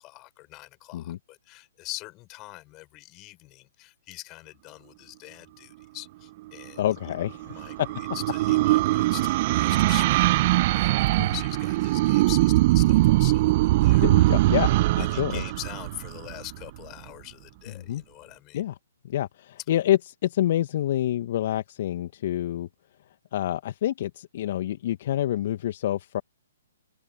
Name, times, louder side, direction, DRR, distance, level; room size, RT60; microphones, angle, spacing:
voice 1, 0.0-6.8 7.4-14.3 15.0-18.6, left 21 dB, 30° left, 6.1 m, -43 dB
voice 2, 6.8-7.9 11.2-11.3 14.0-15.4 17.9-18.0 18.5-18.7 19.0-22.7 23.3-26.2, left 12 dB, 50° left, 2.0 m, -27 dB
sound 1, 7.1-16.6, right 18 dB, 40° right, 0.9 m, -22 dB
open air
figure-of-eight pair, 125°, 0 cm